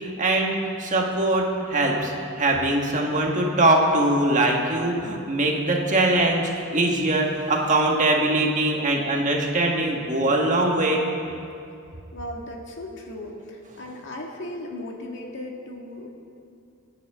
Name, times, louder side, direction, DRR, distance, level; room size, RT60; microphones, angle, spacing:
voice 1, 0.0-11.0, right 2 dB, 35° right, 0 dB, 1.6 m, -22 dB
voice 2, 12.1-16.1, left 1 dB, 60° left, 0 dB, 1.9 m, -36 dB
26.5 x 9.5 x 3.7 m, 2.5 s
head